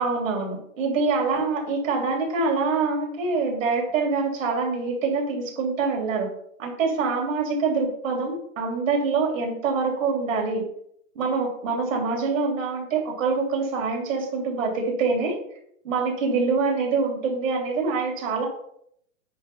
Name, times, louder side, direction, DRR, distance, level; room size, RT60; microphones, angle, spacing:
voice 1, 0.0-6.3 6.6-10.6 11.1-15.3 15.8-18.5, right 4 dB, 75° right, 1 dB, 3.2 m, -25 dB
9.4 x 4.6 x 5.4 m, 0.71 s
hypercardioid pair, 150°, 40 cm